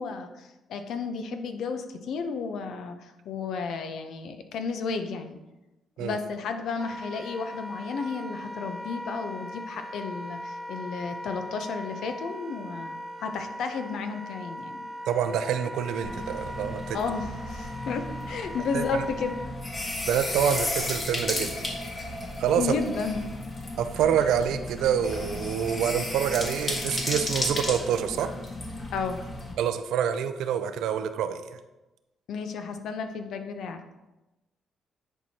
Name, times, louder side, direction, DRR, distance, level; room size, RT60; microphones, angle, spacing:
voice 1, 0.0-5.4 6.0-14.9 16.9-19.4 22.6-23.2 28.9-29.2 32.3-33.8, left 5 dB, 75° left, 7 dB, 0.7 m, -33 dB
Wind instrument woodwind instrument, 6.7-19.5, equal, ahead, 0.8 m, -39 dB
voice 2, 15.1-17.0 18.7-19.0 20.1-21.5 22.4-22.6 23.8-28.3 29.6-31.6, right 8 dB, 85° right, 10 dB, 0.5 m, -27 dB
sound 1, 16.0-29.5, left 2 dB, 35° left, 1.6 m, -34 dB
10.0 x 4.6 x 2.9 m, 1.0 s
cardioid pair, 90°, 0 cm